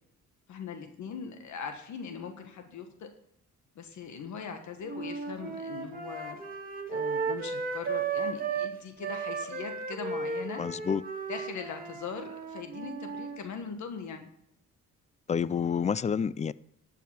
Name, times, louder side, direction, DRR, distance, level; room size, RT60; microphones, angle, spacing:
voice 1, 0.5-3.1 3.7-6.4 6.9-10.8 11.3-14.3, left 6 dB, 70° left, 1.5 m, -40 dB
sound 1, 4.9-8.7 9.0-13.4, right 5 dB, 30° right, 2.0 m, -35 dB
voice 2, 10.6-11.0 15.3-16.5, left 7 dB, 25° left, 0.4 m, -28 dB
11.5 x 5.8 x 7.1 m
cardioid pair, 90°, 30 cm